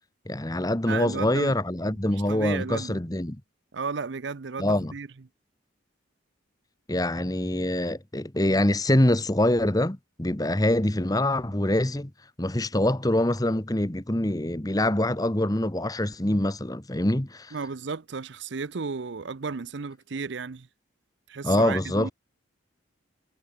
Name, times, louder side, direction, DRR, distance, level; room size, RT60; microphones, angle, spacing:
voice 1, 0.3-3.4 4.6-4.9 6.9-12.1 12.4-17.5 21.4-22.1, left 1 dB, 20° left, 1.2 m, -25 dB
voice 2, 0.9-1.6 2.1-3.0 3.7-5.1 17.5-20.7 21.3-22.1, right 4 dB, 65° right, 0.6 m, -34 dB
head